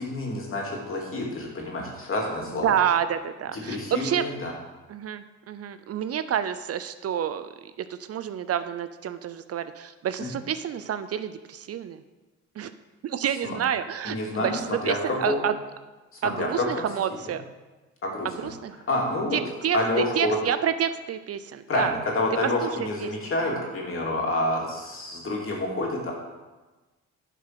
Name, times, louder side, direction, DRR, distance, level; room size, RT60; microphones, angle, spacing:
voice 1, 0.0-2.8 3.5-4.5 10.2-10.3 13.3-13.6 14.0-15.4 16.1-16.9 18.0-18.5 18.9-19.4 19.7-20.4 21.7-26.1, left 2 dB, 45° left, -1 dB, 2.7 m, -28 dB
voice 2, 2.6-4.3 4.9-12.0 12.6-12.7 13.0-15.5 16.2-17.4 18.4-18.8 19.3-21.9 22.6-22.7 23.0-23.1 23.5-23.6, right 9 dB, 55° right, 12 dB, 0.5 m, -29 dB
11.0 x 4.8 x 5.9 m, 1.2 s
cardioid pair, 90°, 30 cm